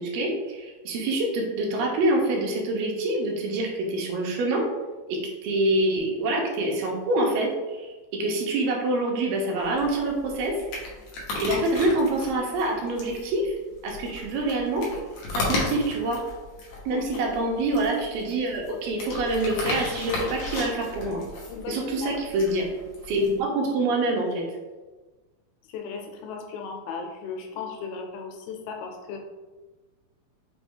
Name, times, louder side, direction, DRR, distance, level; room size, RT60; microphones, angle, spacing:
voice 1, 0.0-4.6 5.1-10.6 11.4-13.6 13.8-14.9 15.3-16.2 16.9-21.2 21.7-22.7 23.1-24.4, right 2 dB, 80° right, 0 dB, 2.4 m, -26 dB
sound 1, 9.6-23.4, left 2 dB, 70° left, 1.6 m, -35 dB
voice 2, 21.5-22.2 25.7-29.2, left 5 dB, 85° left, 2 dB, 2.5 m, -36 dB
6.0 x 2.3 x 3.5 m, 1.2 s
omnidirectional pair, 4.2 m